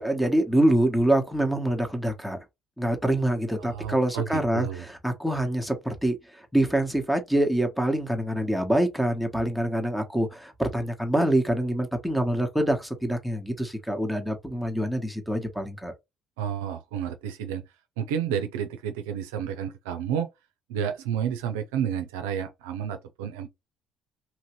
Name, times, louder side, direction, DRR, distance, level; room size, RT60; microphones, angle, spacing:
voice 1, 0.0-2.4 2.8-15.9, right 1 dB, 5° left, 1.0 m, -25 dB
voice 2, 3.6-4.8 16.4-17.6 18.0-20.3 20.7-23.5, right 8 dB, 85° right, 0.4 m, -30 dB
2.9 x 2.6 x 3.0 m
hypercardioid pair, 60°, 0 cm